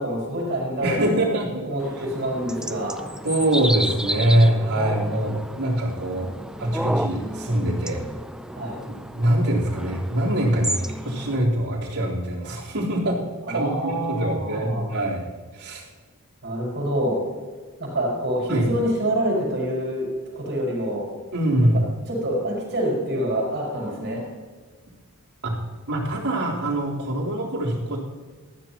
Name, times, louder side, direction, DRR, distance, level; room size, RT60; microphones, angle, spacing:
voice 1, 0.0-1.3 1.6-3.0 8.5-8.8 13.5-14.9 16.4-17.2 17.8-20.1 20.3-21.1 22.1-24.2, equal, 50° right, -2 dB, 5.5 m, -26 dB
voice 2, 0.8-1.6 3.2-6.3 6.6-8.0 8.8-13.2 13.5-15.3 15.5-15.8 18.5-18.7 21.3-21.8 25.4-25.5 25.9-28.0, right 1 dB, 85° right, -5 dB, 3.9 m, -23 dB
sound 1, 1.8-11.4, right 1 dB, 5° right, 0.5 m, -32 dB
19.5 x 14.5 x 3.0 m, 1.4 s
head